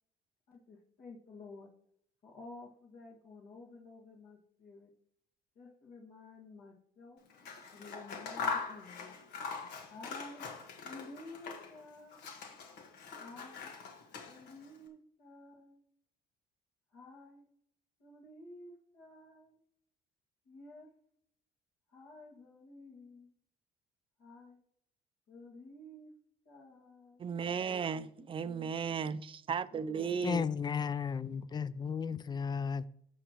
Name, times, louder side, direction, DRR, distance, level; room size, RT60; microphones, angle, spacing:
voice 1, 0.5-1.7 2.2-4.9 5.6-7.2 7.7-9.2 9.6-10.5 10.8-12.3 13.2-13.7 14.3-15.8 16.9-17.4 18.0-19.6 20.5-20.9 21.9-23.3 24.2-24.6 25.3-26.1 26.4-27.2 27.9-28.1 28.4-29.1 29.7-30.2, left 2 dB, 65° left, 2.0 m, -52 dB
Scissors, 7.3-11.8 12.1-14.7, left 5 dB, 85° left, 1.6 m, -42 dB
voice 2, 27.2-30.5, right 6 dB, 30° right, 0.5 m, -35 dB
voice 3, 30.2-32.9, left 6 dB, 25° left, 0.4 m, -34 dB
15.5 x 6.1 x 3.0 m
cardioid pair, 110°, 17 cm